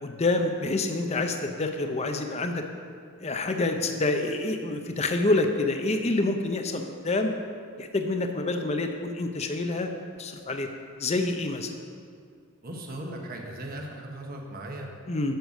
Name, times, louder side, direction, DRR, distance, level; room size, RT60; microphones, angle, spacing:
voice 1, 0.0-2.6 3.2-7.3 7.8-9.9 10.2-10.7 11.0-11.7 15.1-15.3, left 2 dB, 30° left, 5 dB, 0.6 m, -27 dB
voice 2, 12.6-14.9, right 1 dB, 45° right, 1 dB, 1.2 m, -37 dB
7.9 x 6.8 x 6.5 m, 2.2 s
head